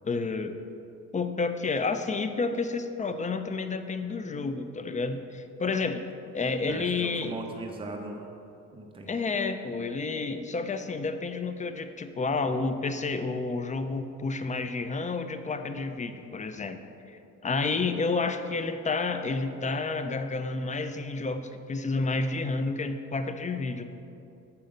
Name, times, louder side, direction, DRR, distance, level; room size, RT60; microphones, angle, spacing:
voice 1, 0.0-0.6 1.1-6.1 6.3-7.3 9.1-16.8 17.1-23.8, left 3 dB, 25° left, 9 dB, 0.4 m, -30 dB
voice 2, 6.7-8.3 8.7-9.1, right 2 dB, 20° right, 2 dB, 0.7 m, -39 dB
6.8 x 5.3 x 5.1 m, 2.7 s
cardioid pair, 90°, 30 cm